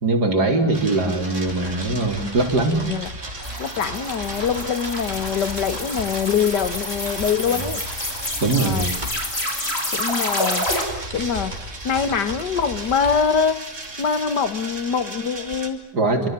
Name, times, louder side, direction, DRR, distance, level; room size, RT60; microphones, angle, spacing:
voice 1, 0.0-2.9 7.5-7.6 8.4-8.9 15.9-16.3, right 2 dB, 70° right, 4.8 m, -21 dB
sound 1, 0.7-15.7, right 2 dB, 45° right, 3.7 m, -37 dB
sound 2, 1.5-15.2, equal, 25° right, 5.5 m, -37 dB
sound 3, 3.4-10.8, left 1 dB, 35° left, 5.8 m, -28 dB
voice 2, 3.6-7.8 8.6-8.9 9.9-10.7 11.1-11.5 11.8-13.7 14.0-15.9, left 6 dB, 85° left, 2.1 m, -23 dB
28.5 x 26.0 x 7.7 m
omnidirectional pair, 1.8 m